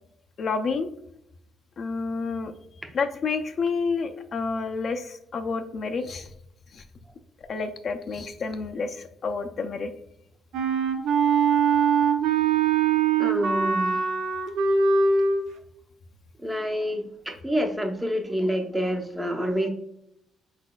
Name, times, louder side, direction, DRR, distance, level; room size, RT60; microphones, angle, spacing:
voice 1, 0.4-0.9 1.8-2.5 2.9-6.3 6.7-6.8 7.5-9.9, left 4 dB, 55° left, 6 dB, 0.4 m, -29 dB
Wind instrument woodwind instrument, 10.5-15.4, right 5 dB, 85° right, 0.6 m, -22 dB
voice 2, 13.2-14.0 16.4-19.7, equal, 10° right, 4 dB, 0.7 m, -27 dB
4.7 x 4.0 x 2.3 m, 0.78 s
cardioid pair, 90°, 0 cm